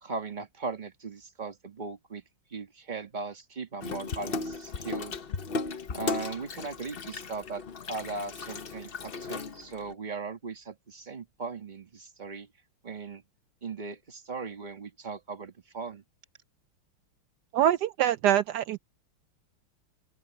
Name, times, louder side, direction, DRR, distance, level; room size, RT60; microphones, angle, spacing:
voice 1, 0.0-2.2 2.5-5.1 5.9-12.5 12.8-13.2 13.6-16.0, right 4 dB, 25° right, 1.7 m, -38 dB
Water tap faucet / Sink (filling or washing), 3.8-9.9, left 4 dB, 60° left, 0.6 m, -36 dB
voice 2, 17.5-18.8, right 11 dB, 75° right, 0.9 m, -24 dB
open air
omnidirectional pair, 2.3 m